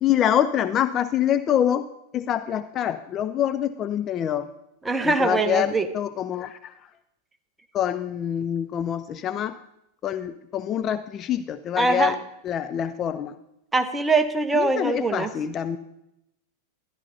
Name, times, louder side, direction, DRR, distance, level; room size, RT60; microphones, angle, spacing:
voice 1, 0.0-4.5 5.0-6.7 7.7-9.6 10.0-12.2 12.4-13.3 14.5-15.8, left 10 dB, 30° left, 11 dB, 0.5 m, -25 dB
voice 2, 4.8-5.9 11.8-12.1 13.7-15.3, right 3 dB, 10° right, 8 dB, 1.0 m, -22 dB
13.0 x 10.5 x 4.0 m, 0.81 s
figure-of-eight pair, 90°, 0 cm